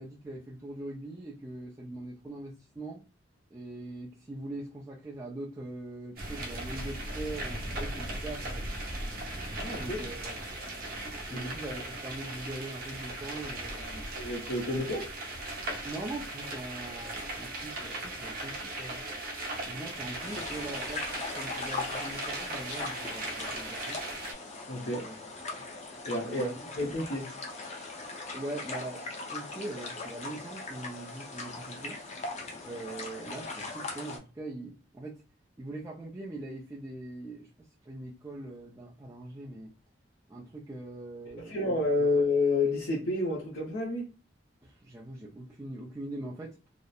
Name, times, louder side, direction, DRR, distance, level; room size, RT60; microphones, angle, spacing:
voice 1, 0.0-3.0 3.5-8.6 9.8-10.6 11.3-14.1 15.8-19.0 19.7-21.0 21.4-24.0 24.7-25.6 26.2-26.7 28.3-29.0 29.3-32.0 32.6-35.1 35.6-37.5 37.9-39.7 40.3-42.1 44.6-46.6, right 2 dB, 15° right, 0.4 m, -42 dB
sound 1, 6.2-24.3, right 2 dB, 50° right, 0.7 m, -38 dB
voice 2, 9.6-10.0 11.3-11.5 14.1-15.1 24.7-25.1 26.0-26.5 26.8-27.3 41.5-44.1, left 2 dB, 70° left, 0.7 m, -29 dB
sound 2, 20.2-34.2, left 3 dB, 40° left, 0.6 m, -40 dB
2.8 x 2.0 x 2.3 m
head